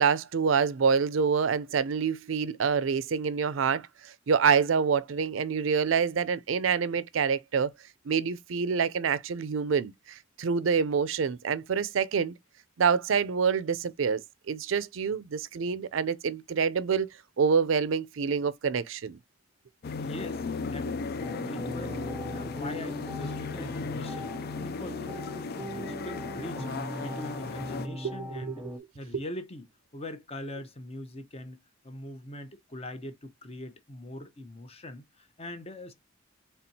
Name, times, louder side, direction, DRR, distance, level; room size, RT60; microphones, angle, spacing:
voice 1, 0.0-3.9 4.3-7.7 8.1-12.3 12.8-14.2 14.5-17.1 17.4-19.2 28.4-28.5, right 6 dB, 80° right, 0.5 m, -26 dB
sound 1, 19.8-27.9, left 4 dB, 50° left, 0.4 m, -36 dB
voice 2, 20.0-26.7 27.0-28.7 28.9-29.6 29.9-35.9, left 1 dB, 30° left, 0.8 m, -42 dB
sound 2, 21.2-28.8, equal, 5° right, 0.6 m, -40 dB
4.2 x 3.5 x 2.7 m
head